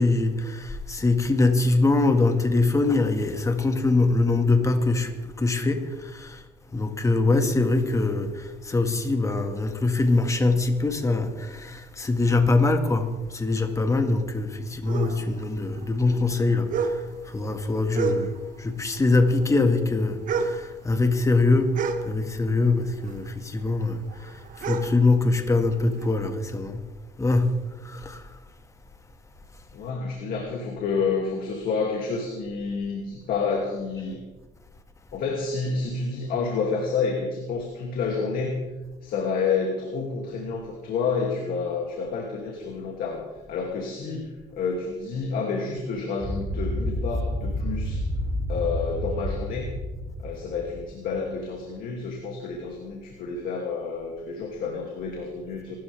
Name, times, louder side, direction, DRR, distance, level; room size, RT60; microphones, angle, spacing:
voice 1, 0.0-6.4 6.7-17.0 17.3-21.7 22.0-26.8 27.2-27.5 27.8-28.2, left 3 dB, 20° left, 2.0 m, -23 dB
sound 1, 14.8-18.7 18.9-22.7 23.0-26.2, right 5 dB, 60° right, 1.5 m, -31 dB
voice 2, 29.7-34.2 35.1-38.6 39.0-43.2 43.5-48.0 48.5-49.8 50.2-55.8, left 4 dB, 70° left, 2.7 m, -29 dB
sound 2, 46.2-51.3, equal, 25° right, 5.6 m, -30 dB
25.5 x 13.0 x 3.6 m
cardioid pair, 95°, 15 cm